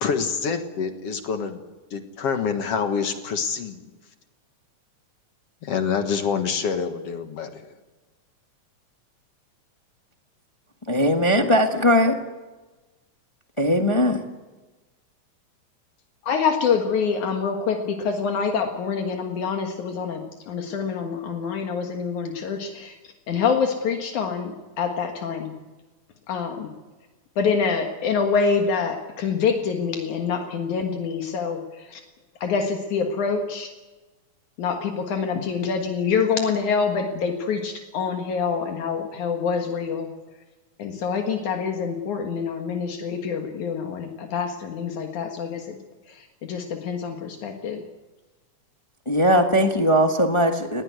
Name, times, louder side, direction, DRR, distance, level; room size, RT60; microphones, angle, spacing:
voice 1, 0.0-1.6 1.9-3.9 5.6-7.7, left 6 dB, 55° left, 7 dB, 2.3 m, -26 dB
voice 2, 10.9-12.2 13.6-14.2 49.1-50.8, equal, 25° left, 5 dB, 0.6 m, -19 dB
voice 3, 16.2-23.0 23.3-25.5 26.3-26.7 27.4-32.0 32.4-33.7 34.6-40.1 40.8-45.8 46.1-47.8, left 5 dB, 75° left, 3 dB, 3.1 m, -26 dB
20.0 x 18.5 x 9.5 m, 1.2 s
omnidirectional pair, 3.5 m